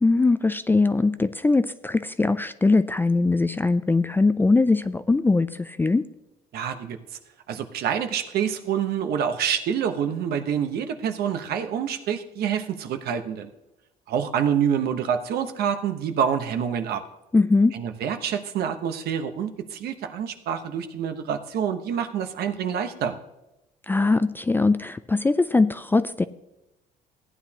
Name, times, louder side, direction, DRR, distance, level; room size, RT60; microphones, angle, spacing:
voice 1, 0.0-6.0 17.3-17.7 23.9-26.2, left 3 dB, 10° left, 12 dB, 0.3 m, -21 dB
voice 2, 6.5-7.0 7.5-13.5 14.1-17.0 17.7-23.2, right 8 dB, 70° right, 8 dB, 1.0 m, -27 dB
15.5 x 9.8 x 2.9 m, 0.93 s
cardioid pair, 110°, 17 cm